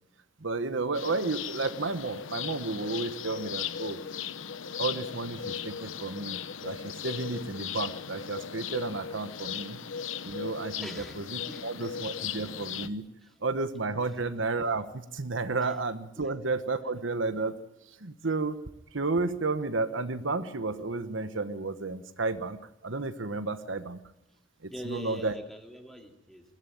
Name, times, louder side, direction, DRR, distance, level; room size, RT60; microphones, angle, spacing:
voice 1, 0.4-4.0 4.8-9.8 10.2-10.9 11.2-13.1 13.4-17.5 18.0-18.6 18.9-24.0 24.6-25.3, right 3 dB, 70° right, 11 dB, 1.2 m, -32 dB
sound 1, 0.9-12.9, left 7 dB, 75° left, 0.9 m, -37 dB
voice 2, 10.8-11.2 11.5-11.9 14.0-14.1 16.2-16.3 24.7-26.4, equal, ahead, 4 dB, 2.5 m, -42 dB
21.5 x 15.5 x 9.1 m, 0.92 s
head